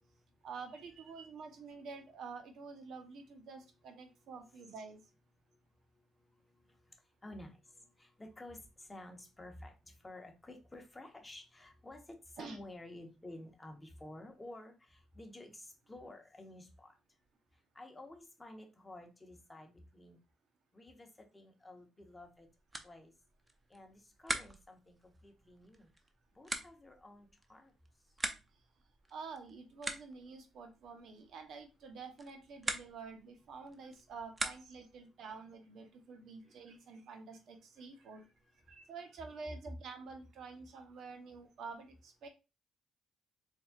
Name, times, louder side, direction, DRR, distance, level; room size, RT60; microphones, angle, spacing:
voice 1, 0.4-5.0 12.4-12.6 29.1-38.3 38.7-42.3, right 4 dB, 70° right, 5 dB, 0.9 m, -48 dB
voice 2, 5.5-17.0 17.5-20.2 20.7-22.5 22.8-23.1 23.7-25.9 26.3-27.7 36.4-36.8 38.0-38.2 38.5-38.8, left 1 dB, 15° left, 4 dB, 1.0 m, -53 dB
sound 1, 22.2-35.0, right 2 dB, 20° right, 0.6 m, -45 dB
4.1 x 3.6 x 2.4 m, 0.28 s
cardioid pair, 90°, 0 cm